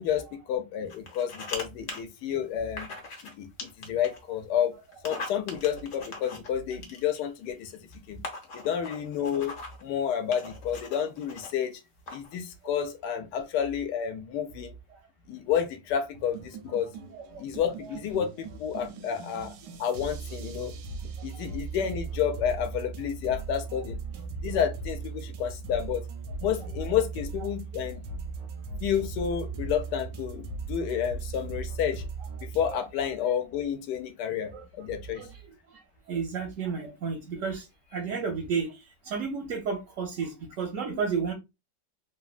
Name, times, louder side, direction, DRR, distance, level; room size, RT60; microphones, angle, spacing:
voice 1, 0.0-2.9 3.2-3.5 3.8-4.7 5.0-7.7 8.1-8.2 8.5-9.5 9.8-11.8 12.1-14.7 15.3-16.9 17.4-19.5 19.8-20.7 21.2-24.0 24.4-26.0 26.4-28.0 28.8-32.0 32.4-35.2, left 8 dB, 75° left, 1.2 m, -30 dB
sound 1, 0.9-1.6 1.9-2.0 2.8-3.3 3.6-4.2 4.9-7.3 7.9-8.0 8.2-9.8 10.3-11.5 12.1-12.3, left 3 dB, 55° left, 1.1 m, -40 dB
sound 2, 16.1-32.7, right 4 dB, 90° right, 1.2 m, -38 dB
voice 2, 32.7-33.1 34.5-34.6 35.2-35.4 36.1-38.7 39.0-41.3, right 5 dB, 65° right, 0.8 m, -32 dB
3.3 x 2.2 x 2.4 m
omnidirectional pair, 1.9 m